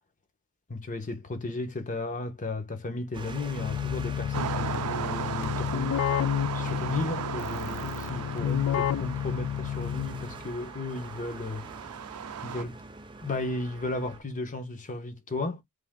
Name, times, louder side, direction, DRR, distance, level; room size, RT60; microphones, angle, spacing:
voice 1, 0.7-6.0 6.5-11.7 12.4-12.8 13.2-15.6, left 2 dB, 35° left, 0.9 m, -34 dB
sound 1, 3.1-14.2, right 3 dB, 20° right, 0.6 m, -44 dB
Keyboard (musical), 3.6-10.4, left 10 dB, 90° left, 0.3 m, -30 dB
sound 2, 4.3-12.6, right 9 dB, 85° right, 0.4 m, -37 dB
3.5 x 3.1 x 3.5 m
head